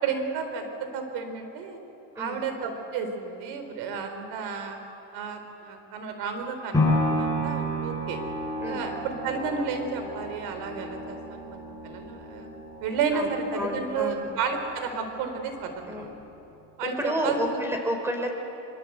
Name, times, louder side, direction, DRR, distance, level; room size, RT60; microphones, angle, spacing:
voice 1, 0.0-1.8 2.1-4.8 5.1-8.2 8.6-16.1 16.8-17.6, right 5 dB, 75° right, 6 dB, 4.2 m, -32 dB
sound 1, 6.7-14.9 15.3-15.4, left 1 dB, 10° left, 6.6 m, -31 dB
voice 2, 13.1-14.3 15.9-16.1 16.8-18.3, equal, 5° right, 3 dB, 4.8 m, -31 dB
24.5 x 23.5 x 8.1 m, 2.9 s
cardioid pair, 120°, 38 cm